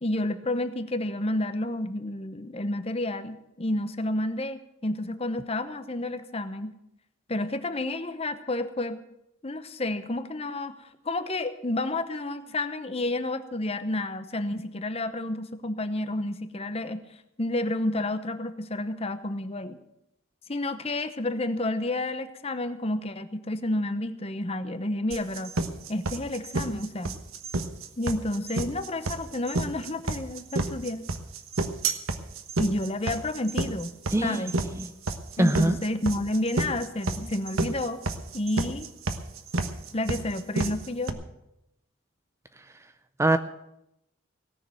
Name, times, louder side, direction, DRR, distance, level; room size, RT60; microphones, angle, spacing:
voice 1, 0.0-6.7 7.3-9.0 9.4-17.0 17.4-19.8 20.5-25.6 25.9-27.2 28.0-31.1 32.6-34.0 34.2-34.5 35.4-38.0 38.3-38.9 39.9-41.2, left 1 dB, 30° left, 11 dB, 0.8 m, -30 dB
sound 1, 25.1-41.1, right 3 dB, 80° right, 1.2 m, -30 dB
voice 2, 34.1-34.5 34.7-34.9 35.4-35.8 43.2-43.4, right 1 dB, 15° right, 10 dB, 0.5 m, -22 dB
18.0 x 6.6 x 8.9 m, 0.85 s
head